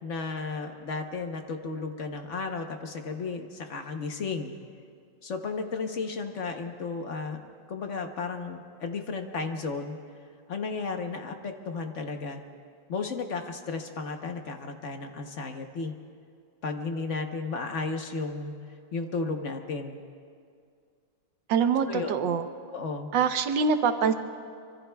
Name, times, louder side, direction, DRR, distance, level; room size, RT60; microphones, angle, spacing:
voice 1, 0.0-4.6 5.2-10.0 10.5-12.4 12.9-15.9 16.6-18.5 18.9-20.0 21.9-22.1 22.7-23.1, left 4 dB, 50° left, 5 dB, 1.0 m, -34 dB
voice 2, 21.5-22.5 23.1-24.1, right 6 dB, 75° right, 8 dB, 1.4 m, -24 dB
25.0 x 24.5 x 2.3 m, 2.2 s
omnidirectional pair, 2.0 m